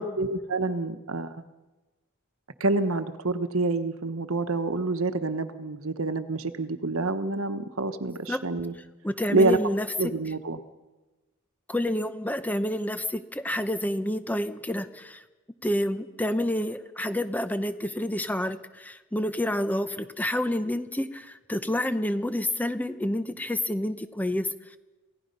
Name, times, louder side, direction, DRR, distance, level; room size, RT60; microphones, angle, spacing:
voice 1, 0.0-1.5 2.6-8.7 9.3-9.6 10.0-10.6, right 2 dB, 65° right, 10 dB, 1.2 m, -27 dB
voice 2, 9.0-9.9 11.7-15.2 15.6-24.8, left 1 dB, 10° left, 10 dB, 0.8 m, -29 dB
28.0 x 16.5 x 5.6 m, 1.2 s
head